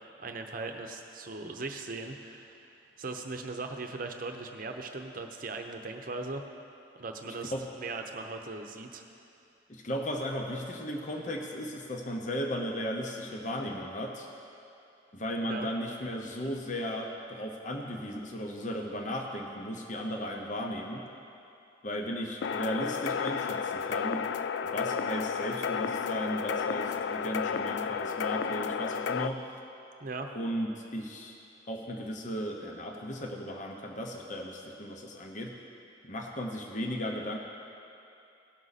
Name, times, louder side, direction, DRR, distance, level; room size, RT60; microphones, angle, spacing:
voice 1, 0.2-2.7 3.0-6.4 7.0-9.0 15.4-15.7 30.0-30.3, right 3 dB, 50° right, 4 dB, 0.8 m, -39 dB
voice 2, 7.3-7.7 9.7-14.3 15.1-21.0 21.8-24.3 24.6-29.4 30.3-31.4 31.7-35.5 36.0-37.4, equal, 40° left, 1 dB, 0.9 m, -35 dB
sound 1, 22.4-29.3, left 6 dB, 70° left, 0.3 m, -32 dB
17.5 x 6.4 x 4.1 m, 2.7 s
head